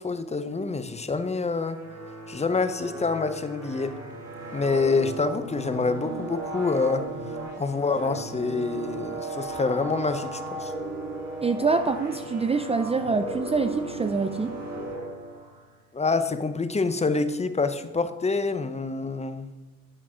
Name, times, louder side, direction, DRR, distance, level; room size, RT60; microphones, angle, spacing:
voice 1, 0.0-1.8 2.3-4.0 4.5-10.7 15.9-19.5, left 4 dB, 20° left, 11 dB, 0.7 m, -27 dB
sound 1, 1.5-15.7, right 2 dB, 90° right, 3.6 m, -36 dB
voice 2, 11.4-14.6, right 4 dB, 20° right, 9 dB, 0.4 m, -25 dB
11.0 x 4.0 x 6.1 m, 1.1 s
cardioid pair, 90°, 30 cm